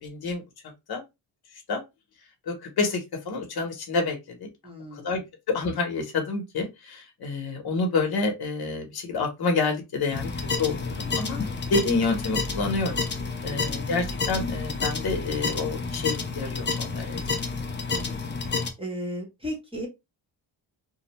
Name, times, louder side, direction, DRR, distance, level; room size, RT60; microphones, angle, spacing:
voice 1, 0.0-0.4 0.9-1.0 1.7-1.8 2.5-4.5 4.9-5.2 5.5-10.3 10.6-11.4 11.7-13.0 13.4-17.2, left 3 dB, 55° left, 0.9 m, -28 dB
voice 2, 4.6-5.2 11.4-11.7 13.4-13.8 17.9-18.2 18.5-19.9, equal, 10° right, 0.9 m, -37 dB
sound 1, 10.1-18.7, left 4 dB, 25° left, 0.4 m, -30 dB
2.4 x 2.1 x 2.9 m
wide cardioid pair, 125°, 45 cm